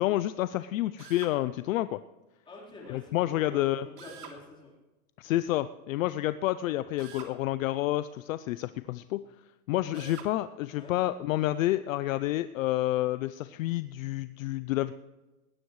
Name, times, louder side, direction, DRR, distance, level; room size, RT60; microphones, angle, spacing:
voice 1, 0.0-2.0 2.9-3.9 5.2-9.2 9.7-14.9, left 15 dB, 60° left, 14 dB, 0.5 m, -29 dB
Drill, 1.0-1.4 4.0-4.4 7.0-7.4 9.9-10.3, right 8 dB, 80° right, 3.1 m, -46 dB
voice 2, 2.5-4.7 9.9-10.0 10.8-10.9, left 1 dB, 10° left, -4 dB, 4.0 m, -47 dB
19.5 x 17.5 x 3.2 m, 1.1 s
supercardioid pair, 160°, 46 cm